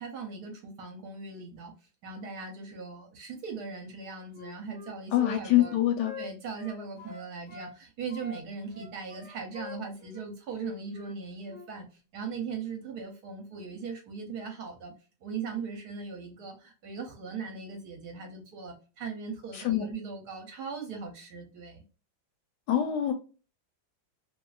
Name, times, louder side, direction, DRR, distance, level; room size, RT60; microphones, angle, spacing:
voice 1, 0.0-1.7 2.0-5.8 6.2-11.8 12.1-14.9 15.2-21.8, right 5 dB, 65° right, 1.1 m, -39 dB
Wind instrument woodwind instrument, 4.3-7.7 8.1-11.2 11.5-11.7, left 5 dB, 45° left, 0.6 m, -45 dB
voice 2, 5.1-6.1 19.5-19.8 22.7-23.1, left 12 dB, 70° left, 1.1 m, -25 dB
2.8 x 2.4 x 2.2 m
omnidirectional pair, 2.1 m